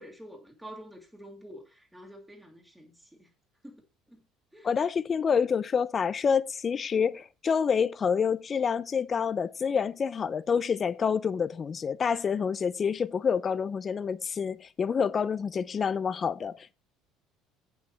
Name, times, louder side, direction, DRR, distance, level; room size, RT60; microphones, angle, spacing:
voice 1, 0.0-3.3 3.6-3.8 4.1-4.2 4.5-4.7, equal, 5° right, 1.8 m, -48 dB
voice 2, 4.6-16.7, left 6 dB, 30° left, 0.5 m, -27 dB
8.4 x 7.0 x 5.5 m
cardioid pair, 135°, 0 cm